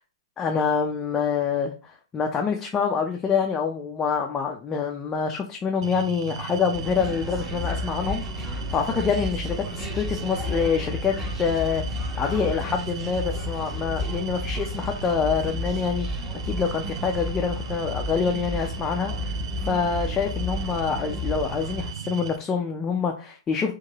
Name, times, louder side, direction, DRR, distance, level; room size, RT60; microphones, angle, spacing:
voice 1, 0.4-16.1 16.4-19.4 19.6-23.7, left 6 dB, 15° left, 2 dB, 0.4 m, -26 dB
sound 1, 5.8-22.4, right 8 dB, 65° right, 0.3 m, -36 dB
sound 2, 6.7-21.9, left 2 dB, 10° right, 0.8 m, -33 dB
2.6 x 2.5 x 2.8 m, 0.35 s
figure-of-eight pair, 115°, 3 cm